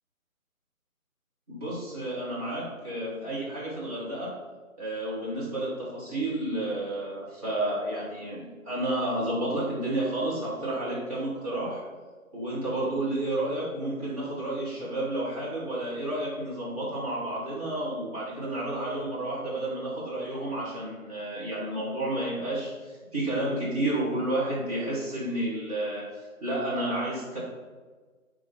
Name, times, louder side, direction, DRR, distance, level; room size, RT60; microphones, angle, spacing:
voice 1, 1.5-4.4 4.8-11.8 12.3-27.4, right 1 dB, 25° right, -7 dB, 1.8 m, -31 dB
8.4 x 3.3 x 4.3 m, 1.4 s
figure-of-eight pair, 150°, 42 cm